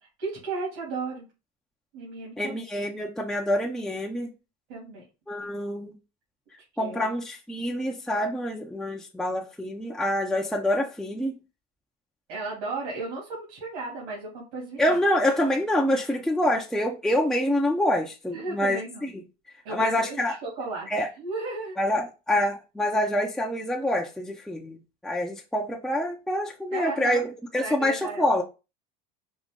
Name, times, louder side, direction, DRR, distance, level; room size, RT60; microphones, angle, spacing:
voice 1, 0.2-1.3 1.9-2.6 4.7-5.0 5.4-5.5 6.8-7.1 12.3-15.0 16.4-16.5 18.3-19.1 19.6-20.9 21.2-21.7 26.7-27.3 27.6-28.2, right 3 dB, 75° right, 2.7 m, -35 dB
voice 2, 2.4-4.3 5.3-5.9 6.8-11.4 14.8-19.2 19.7-20.4 20.9-21.1 21.8-24.8 25.0-28.4, left 1 dB, 5° left, 0.6 m, -26 dB
5.3 x 2.6 x 3.7 m
supercardioid pair, 115°, 21 cm